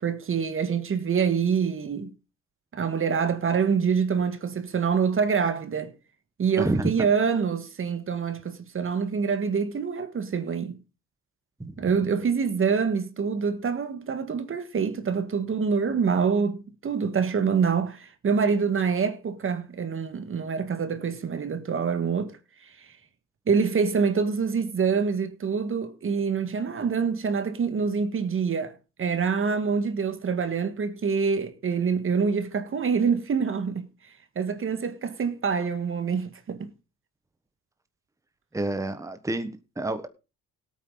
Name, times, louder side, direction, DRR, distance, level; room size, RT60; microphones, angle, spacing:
voice 1, 0.0-2.1 2.7-5.9 6.4-10.7 11.8-22.4 23.5-33.9 34.3-36.7, right 6 dB, 45° right, 1.6 m, -26 dB
voice 2, 6.6-6.9 11.6-11.8 38.5-40.1, right 2 dB, 10° right, 1.3 m, -28 dB
17.5 x 8.7 x 3.9 m
cardioid pair, 90°, 30 cm